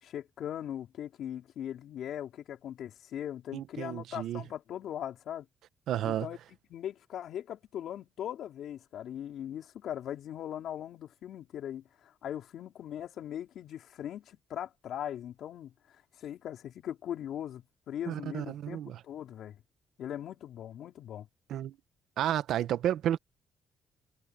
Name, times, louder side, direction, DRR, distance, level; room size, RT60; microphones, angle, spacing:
voice 1, 0.0-5.5 6.0-6.4 6.7-19.6 20.0-21.3, left 10 dB, 75° left, 4.0 m, -40 dB
voice 2, 3.5-4.4 5.9-6.3 18.1-19.0 21.5-21.8 22.2-23.2, right 11 dB, 80° right, 1.1 m, -31 dB
cardioid pair, 90°, 0 cm